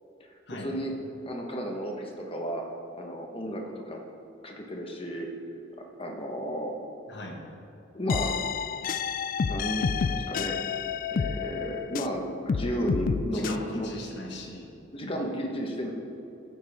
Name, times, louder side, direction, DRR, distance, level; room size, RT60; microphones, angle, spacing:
voice 1, 0.6-0.9 1.2-2.6 3.0-4.0 4.4-5.3 6.0-6.7 7.9-8.4 9.4-10.5 11.1-14.0 14.9-15.9, equal, 30° left, 1 dB, 1.4 m, -33 dB
voice 2, 7.1-7.4 13.3-14.7 15.0-15.3, left 1 dB, 65° left, 0 dB, 1.7 m, -39 dB
sound 1, 8.1-12.2 12.5-13.5, left 5 dB, 45° left, 0.3 m, -29 dB
14.5 x 9.0 x 3.7 m, 2.8 s
head